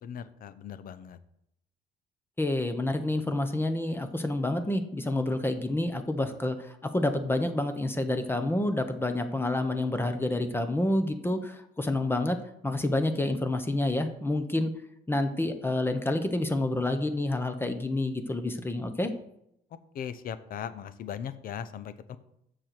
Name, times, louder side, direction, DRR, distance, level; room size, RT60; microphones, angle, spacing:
voice 1, 0.0-1.2 19.9-22.2, left 8 dB, 60° left, 13 dB, 0.8 m, -38 dB
voice 2, 2.4-12.4 12.6-14.7 15.1-19.1, left 1 dB, 15° left, 8 dB, 1.1 m, -28 dB
7.5 x 6.8 x 5.9 m, 0.77 s
cardioid pair, 110°, 17 cm